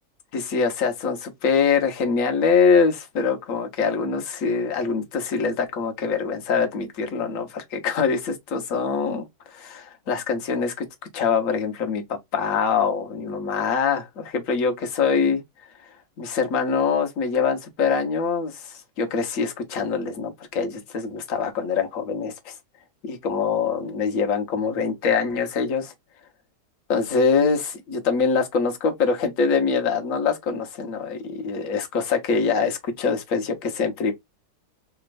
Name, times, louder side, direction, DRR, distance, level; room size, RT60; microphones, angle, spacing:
voice 1, 0.3-10.8 11.1-15.4 16.2-22.5 23.0-25.9 26.9-34.1, left 5 dB, 50° left, 1.4 m, -24 dB
4.3 x 3.0 x 2.5 m
omnidirectional pair, 1.9 m